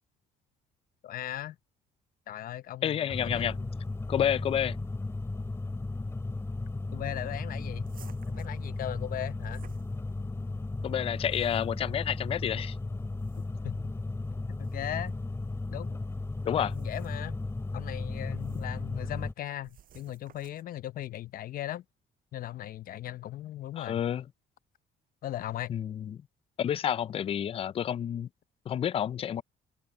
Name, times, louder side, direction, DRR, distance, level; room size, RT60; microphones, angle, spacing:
voice 1, 1.0-1.6 2.3-3.7 6.9-7.9 8.3-9.6 13.6-13.9 14.5-15.2 15.7-16.0 16.5-17.4 17.7-21.8 22.3-24.0 25.2-25.7, left 12 dB, 60° left, 0.8 m, -38 dB
voice 2, 2.8-3.6 4.1-4.8 10.8-12.8 16.4-16.7 23.8-24.2 25.7-26.2 26.6-28.3 28.7-29.4, left 9 dB, 35° left, 0.4 m, -29 dB
sound 1, 3.1-19.3, left 2 dB, 15° left, 3.0 m, -35 dB
sound 2, 7.8-10.5 11.0-11.9 13.0-13.7 14.5-14.8 16.6-17.3 18.3-18.8 19.6-20.8, right 10 dB, 55° right, 6.7 m, -57 dB
open air
cardioid pair, 110°, 17 cm